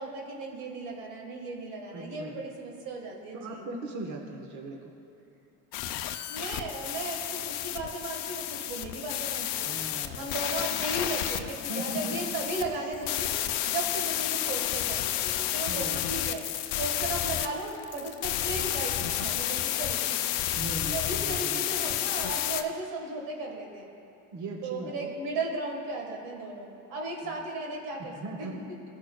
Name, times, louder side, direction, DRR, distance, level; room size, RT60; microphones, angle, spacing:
voice 1, 0.0-3.7 6.3-9.8 10.1-20.6 20.9-23.9 24.6-28.5, right 2 dB, 90° right, 1 dB, 1.6 m, -36 dB
voice 2, 1.9-2.3 3.3-4.9 9.6-10.3 11.7-12.3 15.7-16.0 20.5-22.0 24.3-25.2 28.0-28.6, right 2 dB, 50° right, 2 dB, 1.1 m, -39 dB
sound 1, 5.7-22.6, left 12 dB, 80° left, 0.6 m, -31 dB
16.0 x 6.4 x 2.2 m, 3.0 s
cardioid pair, 110°, 39 cm